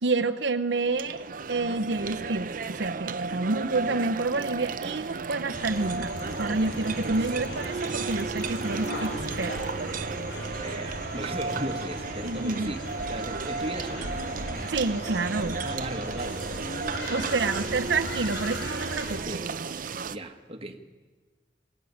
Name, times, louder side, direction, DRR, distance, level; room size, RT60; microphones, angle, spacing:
voice 1, 0.0-6.1 6.4-9.6 12.2-12.7 13.3-13.4 14.7-15.6 17.1-19.2, right 3 dB, 80° right, 6 dB, 0.8 m, -29 dB
sound 1, 0.7-20.2, right 4 dB, 50° right, 0.7 m, -34 dB
sound 2, 5.5-19.2, left 1 dB, 70° left, 3.7 m, -38 dB
voice 2, 10.6-14.1 15.6-17.8 19.2-19.5 20.1-20.8, right 1 dB, 35° right, 5 dB, 1.5 m, -37 dB
21.5 x 17.5 x 9.4 m, 1.4 s
head